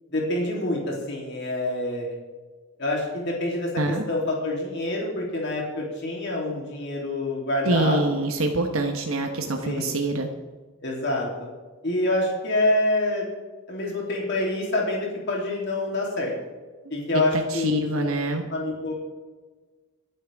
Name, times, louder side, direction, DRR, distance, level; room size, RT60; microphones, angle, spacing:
voice 1, 0.1-2.1 2.8-8.0 9.6-9.9 10.8-11.5 11.8-13.3 13.7-16.3 16.9-18.1 18.5-18.9, left 1 dB, 55° left, -3 dB, 3.2 m, -26 dB
voice 2, 7.7-10.3 17.3-18.4, right 2 dB, 80° right, 4 dB, 1.2 m, -25 dB
26.0 x 9.1 x 3.6 m, 1.3 s
head